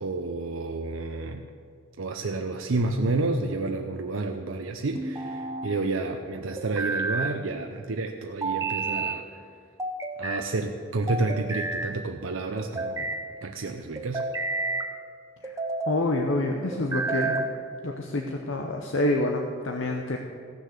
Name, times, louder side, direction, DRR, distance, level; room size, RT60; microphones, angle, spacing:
voice 1, 0.0-1.4 2.0-9.4 10.2-13.1 13.4-14.2, right 3 dB, 90° right, 4 dB, 0.6 m, -30 dB
sound 1, 2.9-3.6 4.9-5.7 6.6-7.4 8.4-9.2 9.8-10.5 11.1-11.9 12.6-13.2 14.0-14.9 15.4-16.0 16.7-17.6, right 3 dB, 15° right, 0.6 m, -30 dB
voice 2, 15.8-17.5 17.8-20.2, left 2 dB, 80° left, 2 dB, 0.8 m, -27 dB
15.0 x 6.5 x 6.6 m, 2.3 s
head